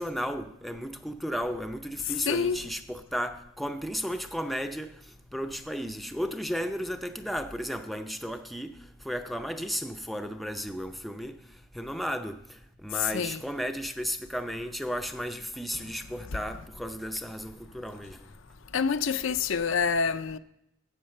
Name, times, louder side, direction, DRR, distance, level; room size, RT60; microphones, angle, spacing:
voice 1, 0.0-4.9 5.3-8.8 9.0-11.4 11.7-12.4 12.8-18.2, equal, ahead, 0.5 m, -34 dB
voice 2, 2.1-2.6 13.0-13.4 18.7-20.4, left 6 dB, 65° left, 0.5 m, -27 dB
12.5 x 8.3 x 6.6 m
head